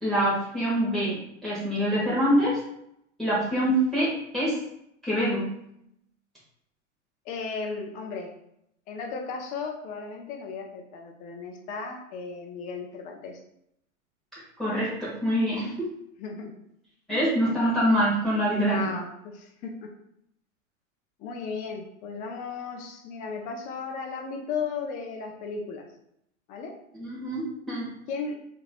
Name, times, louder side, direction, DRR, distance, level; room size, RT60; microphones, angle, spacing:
voice 1, 0.0-2.6 3.2-4.6 5.0-5.5 14.6-15.7 17.1-19.0 27.0-27.9, equal, ahead, -10 dB, 0.9 m, -25 dB
voice 2, 7.3-8.3 8.9-13.4 16.2-16.5 17.1-17.3 18.5-19.9 21.2-25.9 26.5-26.8 28.1-28.4, left 5 dB, 25° left, 3 dB, 0.3 m, -35 dB
3.1 x 2.5 x 2.3 m, 0.76 s
hypercardioid pair, 100°, 38 cm